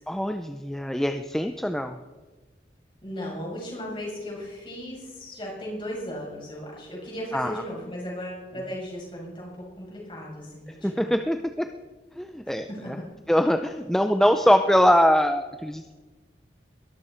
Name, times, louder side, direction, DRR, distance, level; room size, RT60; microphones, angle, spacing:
voice 1, 0.1-2.0 7.3-7.6 10.8-11.7 12.2-13.0 13.3-15.9, equal, 5° left, 7 dB, 0.5 m, -23 dB
voice 2, 3.0-11.1 12.7-12.9, equal, 30° left, -3 dB, 6.9 m, -36 dB
21.5 x 14.0 x 4.5 m, 1.3 s
head